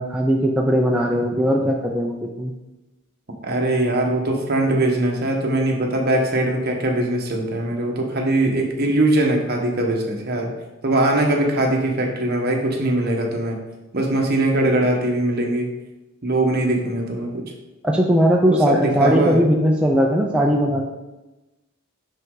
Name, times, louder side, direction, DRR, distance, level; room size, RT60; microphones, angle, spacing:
voice 1, 0.0-2.5 17.8-20.8, equal, 5° right, -1 dB, 0.4 m, -19 dB
voice 2, 3.4-10.5 10.8-13.6 13.9-15.7 16.2-17.4 18.5-19.4, right 1 dB, 45° right, 1 dB, 1.1 m, -21 dB
6.3 x 5.5 x 3.8 m, 1.1 s
head